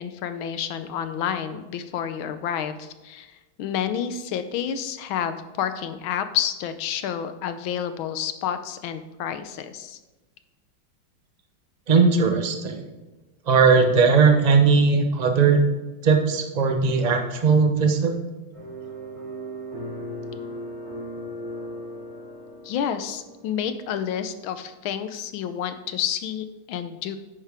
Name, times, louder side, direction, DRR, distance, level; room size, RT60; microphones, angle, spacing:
voice 1, 0.0-3.3 3.6-10.0 22.6-27.2, left 9 dB, 75° left, 10 dB, 1.5 m, -29 dB
voice 2, 11.9-12.8 13.5-15.6 16.0-18.1, right 5 dB, 65° right, 5 dB, 0.4 m, -18 dB
sound 1, 18.5-23.7, equal, 45° right, 3.9 m, -37 dB
10.5 x 8.8 x 3.5 m, 1.1 s
omnidirectional pair, 2.3 m